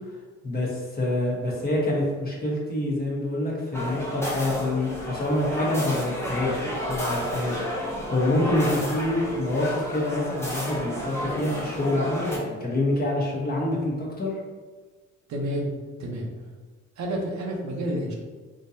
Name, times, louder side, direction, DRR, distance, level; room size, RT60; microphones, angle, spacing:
voice 1, 0.4-14.4, left 1 dB, 30° left, -3 dB, 1.1 m, -26 dB
sound 1, 3.7-12.4, left 1 dB, 10° left, 0.9 m, -31 dB
voice 2, 15.3-15.7 16.0-16.3 17.0-18.1, right 1 dB, 70° right, 0 dB, 0.8 m, -29 dB
3.7 x 2.8 x 2.7 m, 1.4 s
cardioid pair, 90°, 30 cm